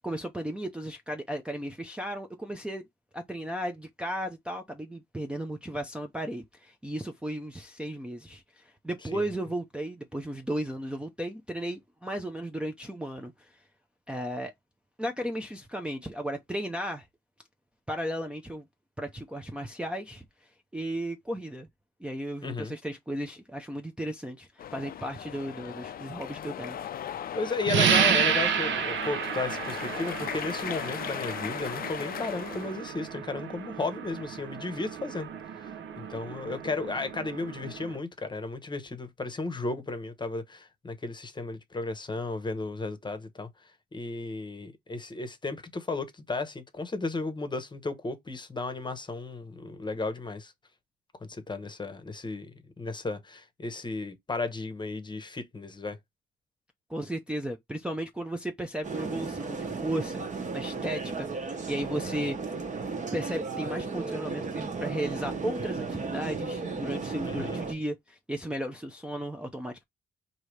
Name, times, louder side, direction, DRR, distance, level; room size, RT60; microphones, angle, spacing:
voice 1, 0.0-2.8 3.1-13.6 14.1-14.5 15.0-17.1 17.9-18.6 19.0-20.2 20.7-21.7 22.0-26.8 56.9-62.6 63.1-69.8, right 1 dB, 5° right, 0.6 m, -35 dB
voice 2, 22.4-22.7 27.3-35.3 35.6-43.5 43.9-50.5 51.2-56.0 67.2-67.6, left 3 dB, 25° left, 1.0 m, -34 dB
sound 1, 24.6-33.0, left 10 dB, 50° left, 0.4 m, -38 dB
sound 2, 27.7-38.0, right 7 dB, 70° right, 0.8 m, -31 dB
sound 3, 58.8-67.7, right 4 dB, 40° right, 1.2 m, -34 dB
4.8 x 2.8 x 3.2 m
cardioid pair, 90°, 20 cm